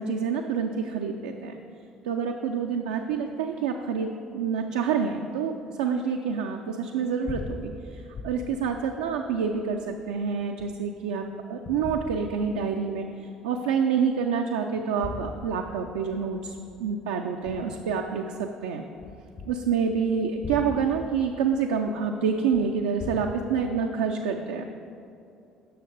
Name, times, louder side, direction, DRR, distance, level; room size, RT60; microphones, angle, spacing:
voice 1, 0.0-1.6 2.0-18.9 19.5-24.6, right 6 dB, 75° right, 3 dB, 0.4 m, -28 dB
sound 1, 7.0-11.1 11.7-13.0 13.5-13.6 14.7-18.4 19.0-23.2, left 2 dB, 55° left, 1.4 m, -42 dB
7.8 x 6.3 x 5.0 m, 2.6 s
figure-of-eight pair, 50°, 2 cm